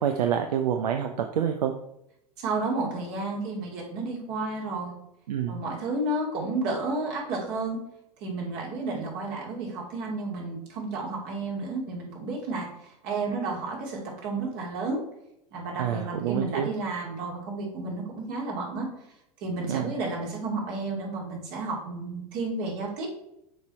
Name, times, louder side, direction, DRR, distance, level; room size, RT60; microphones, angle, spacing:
voice 1, 0.0-1.7 5.3-5.6 15.8-16.7 19.7-19.9, right 9 dB, 75° right, 5 dB, 0.6 m, -27 dB
voice 2, 2.4-5.0 5.5-7.8 8.2-15.0 15.5-18.9 19.4-23.1, right 3 dB, 50° right, -1 dB, 2.5 m, -31 dB
6.6 x 4.7 x 4.3 m, 0.80 s
hypercardioid pair, 90°, 21 cm